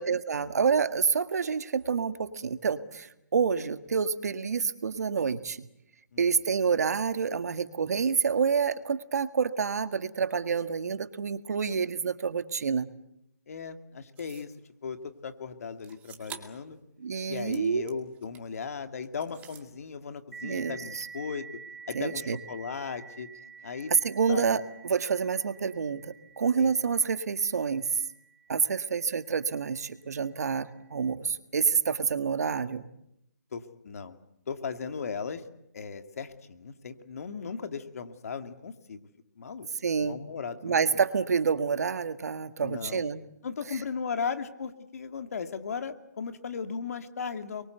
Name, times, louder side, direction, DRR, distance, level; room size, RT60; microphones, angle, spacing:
voice 1, 0.0-5.7 6.2-12.9 17.0-18.0 20.4-21.1 21.9-22.4 24.0-27.9 28.5-32.9 39.8-40.2 40.6-43.3, right 6 dB, 65° right, 11 dB, 1.7 m, -28 dB
voice 2, 13.5-14.5 14.8-16.8 17.3-21.5 21.9-23.3 23.6-23.9 24.3-24.5 26.6-26.7 31.2-31.4 33.5-34.2 34.5-35.5 35.7-39.0 39.4-39.7 40.0-41.0 42.6-43.1 43.4-47.7, left 5 dB, 55° left, 8 dB, 2.5 m, -37 dB
sound 1, 14.2-14.6 15.8-16.7 17.1-18.6 19.0-19.7, right 9 dB, 15° right, 2.3 m, -48 dB
sound 2, 20.3-29.6, right 6 dB, 80° right, 2.1 m, -49 dB
29.5 x 23.0 x 8.1 m, 0.83 s
hypercardioid pair, 150°, 9 cm